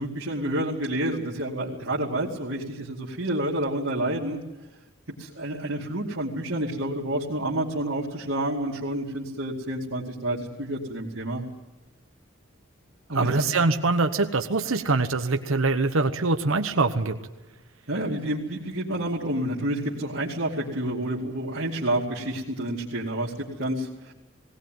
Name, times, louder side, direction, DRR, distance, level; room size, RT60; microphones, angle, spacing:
voice 1, 0.0-4.4 5.2-11.4 13.1-13.6 17.9-23.3 23.6-24.1, right 1 dB, 65° right, -6 dB, 2.5 m, -29 dB
voice 2, 13.1-17.2, right 3 dB, 80° right, 7 dB, 1.1 m, -23 dB
19.5 x 18.0 x 9.2 m, 1.1 s
head